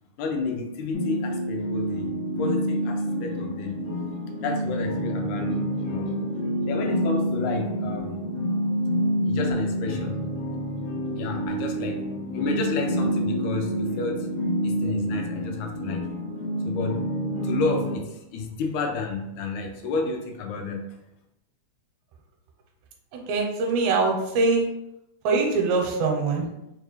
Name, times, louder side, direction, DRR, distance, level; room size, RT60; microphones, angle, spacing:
voice 1, 0.2-3.8 4.4-6.2 6.7-8.2 9.2-10.2 11.2-14.3 14.6-16.2 16.7-17.0 17.4-20.9, left 4 dB, 85° left, 3 dB, 1.9 m, -31 dB
sound 1, 0.9-18.0, equal, 60° left, 2.0 m, -28 dB
voice 2, 23.3-24.7 25.2-26.5, right 3 dB, 85° right, 1 dB, 2.0 m, -23 dB
4.7 x 2.3 x 3.1 m, 0.87 s
omnidirectional pair, 3.3 m